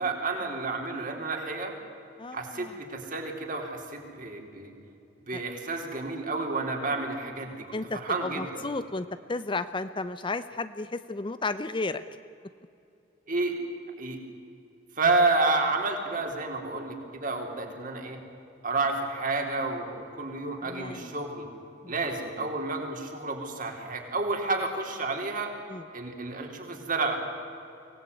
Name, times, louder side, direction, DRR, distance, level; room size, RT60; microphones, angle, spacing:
voice 1, 0.0-1.7 2.3-4.7 5.2-7.7 7.9-8.7 13.3-13.5 14.0-14.2 15.0-18.2 18.6-21.5 21.9-25.5 25.9-27.2, right 3 dB, 40° right, 3 dB, 3.6 m, -30 dB
voice 2, 2.2-2.7 5.3-5.4 7.7-12.0 20.6-21.1 21.8-21.9 25.7-25.8, left 3 dB, 25° left, 13 dB, 0.5 m, -33 dB
24.5 x 18.0 x 9.5 m, 2.7 s
head